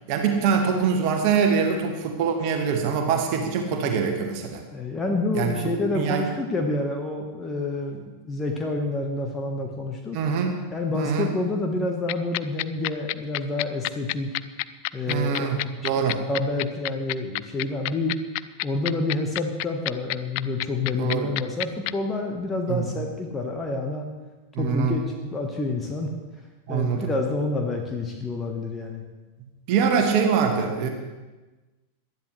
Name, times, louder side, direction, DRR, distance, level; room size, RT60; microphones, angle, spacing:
voice 1, 0.1-4.6 5.3-5.6 5.9-6.2 10.1-10.5 10.9-11.3 15.1-16.2 21.0-21.3 22.7-22.9 24.5-24.9 26.7-27.1 29.7-30.9, right 6 dB, 45° right, 3 dB, 1.7 m, -24 dB
voice 2, 4.7-10.2 10.7-14.3 14.9-15.5 16.3-18.2 18.6-24.1 24.6-26.1 26.7-29.0, left 2 dB, 15° left, 2 dB, 1.4 m, -28 dB
sound 1, 12.1-21.9, left 23 dB, 45° left, 0.4 m, -27 dB
19.0 x 12.5 x 3.3 m, 1.2 s
figure-of-eight pair, 90°, 0 cm